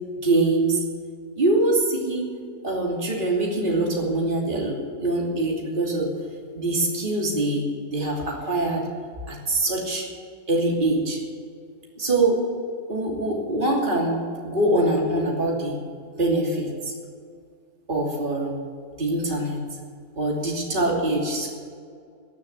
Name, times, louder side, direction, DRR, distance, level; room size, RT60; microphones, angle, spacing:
voice 1, 0.2-0.8 1.4-2.4 2.6-6.1 6.5-8.9 9.3-10.1 10.5-11.2 12.0-12.4 12.9-15.8 16.2-16.9 17.9-18.5 19.0-19.6 20.2-21.5, right 2 dB, 30° right, -2 dB, 3.0 m, -24 dB
21.0 x 7.3 x 8.4 m, 2.1 s
omnidirectional pair, 1.8 m